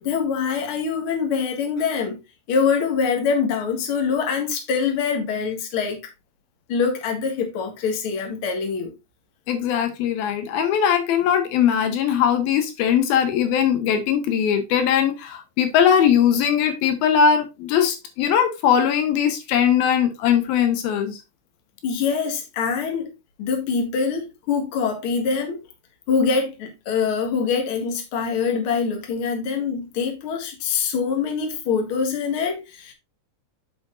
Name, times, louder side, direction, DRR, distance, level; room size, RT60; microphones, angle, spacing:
voice 1, 0.0-2.2 2.5-6.0 6.7-8.9 21.8-23.1 23.4-25.6 26.1-32.9, left 5 dB, 45° left, 2.1 m, -24 dB
voice 2, 9.5-21.2, left 8 dB, 90° left, 3.1 m, -20 dB
9.3 x 6.3 x 2.5 m
omnidirectional pair, 4.1 m